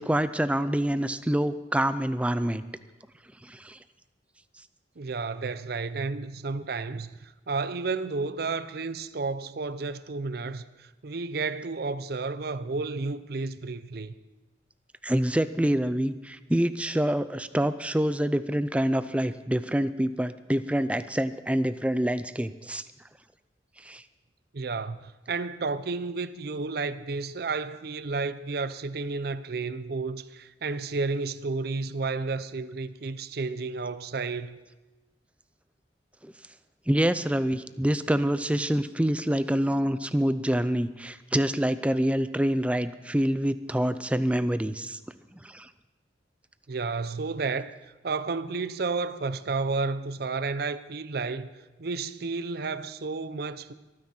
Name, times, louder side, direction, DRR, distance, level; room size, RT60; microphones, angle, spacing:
voice 1, 0.0-2.6 3.4-3.8 15.0-22.8 23.8-24.0 36.2-36.3 36.9-45.0 45.4-45.7, right 1 dB, 5° right, 0.4 m, -26 dB
voice 2, 5.0-14.1 24.5-34.6 46.7-47.8 48.0-51.5 51.8-53.7, right 4 dB, 55° right, 0.6 m, -32 dB
23.0 x 9.6 x 4.4 m
head